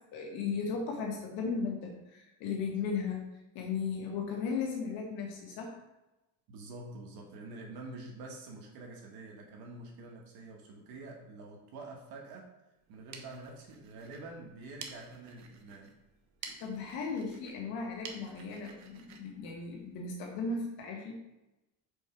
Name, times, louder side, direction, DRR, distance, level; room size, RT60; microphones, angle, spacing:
voice 1, 0.1-3.2 3.5-5.8 16.6-21.2, left 5 dB, 75° left, 0 dB, 1.5 m, -36 dB
voice 2, 6.5-12.5 12.9-15.9, right 2 dB, 70° right, 0 dB, 1.5 m, -47 dB
sound 1, 12.8-20.3, right 5 dB, 50° right, 0.9 m, -51 dB
5.3 x 4.3 x 5.0 m, 0.98 s
cardioid pair, 145°, 37 cm